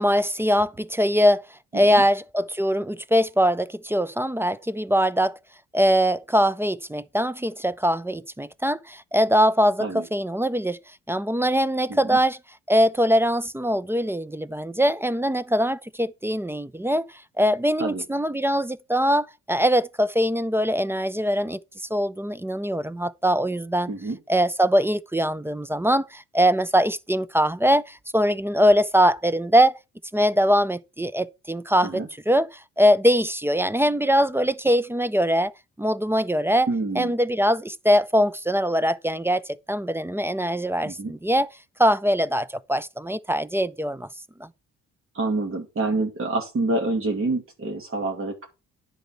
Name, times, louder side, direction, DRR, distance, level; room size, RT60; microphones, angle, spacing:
voice 1, 0.0-1.4 1.7-5.4 5.7-10.8 11.1-12.4 12.7-17.1 17.4-21.6 21.9-23.9 24.3-29.8 30.1-35.5 35.8-36.7 37.0-41.5 41.8-44.1 44.4-44.5, equal, 10° right, 0.4 m, -22 dB
voice 2, 36.7-37.1 40.8-41.1 45.1-48.5, right 2 dB, 45° right, 2.3 m, -27 dB
10.0 x 4.2 x 5.6 m
cardioid pair, 90°, 30 cm